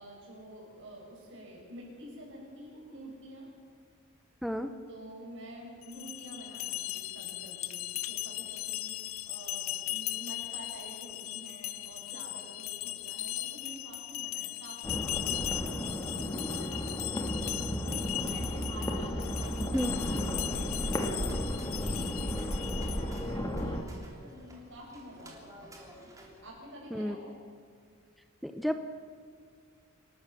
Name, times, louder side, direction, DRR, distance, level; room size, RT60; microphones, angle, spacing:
voice 1, 0.0-3.5 4.9-26.1 26.4-27.4, equal, 65° right, -2 dB, 7.3 m, -49 dB
sound 1, 5.8-23.3, left 16 dB, 70° left, 0.7 m, -38 dB
sound 2, 14.8-23.8, equal, 15° left, 1.7 m, -34 dB
sound 3, 19.4-26.4, right 1 dB, 15° right, 3.4 m, -54 dB
voice 2, 28.4-28.8, equal, ahead, 7 dB, 0.7 m, -31 dB
27.5 x 13.0 x 7.2 m, 2.2 s
head